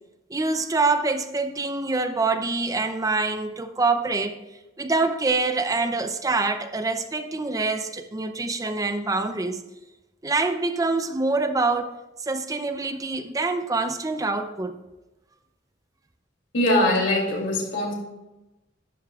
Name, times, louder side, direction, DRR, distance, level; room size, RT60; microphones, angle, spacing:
voice 1, 0.3-4.4 4.8-9.6 10.2-14.8, right 3 dB, 20° right, 0.5 m, -25 dB
voice 2, 16.5-17.9, left 1 dB, 90° left, 2.8 m, -22 dB
11.5 x 10.5 x 2.4 m
head